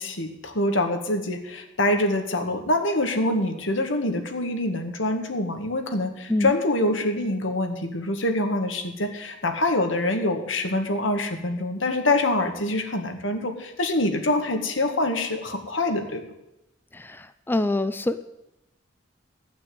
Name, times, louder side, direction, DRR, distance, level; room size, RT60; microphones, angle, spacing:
voice 1, 0.0-16.2, left 1 dB, 90° left, 5 dB, 1.9 m, -25 dB
voice 2, 16.9-18.2, left 2 dB, 10° left, 11 dB, 0.4 m, -25 dB
14.5 x 6.1 x 9.4 m, 0.91 s
head